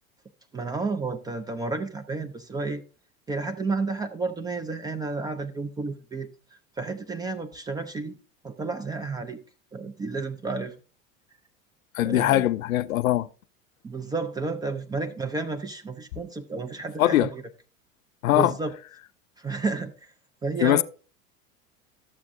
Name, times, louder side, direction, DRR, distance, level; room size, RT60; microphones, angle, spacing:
voice 1, 0.5-2.8 3.3-8.2 8.4-9.4 9.7-10.8 12.0-12.5 13.8-17.4 18.3-18.7 19.4-20.1 20.4-20.8, right 3 dB, 10° right, 0.3 m, -31 dB
voice 2, 11.9-13.3 17.0-17.3 18.2-18.5 20.6-20.8, left 15 dB, 75° left, 0.5 m, -21 dB
12.5 x 7.4 x 2.5 m
figure-of-eight pair, 80°, 42 cm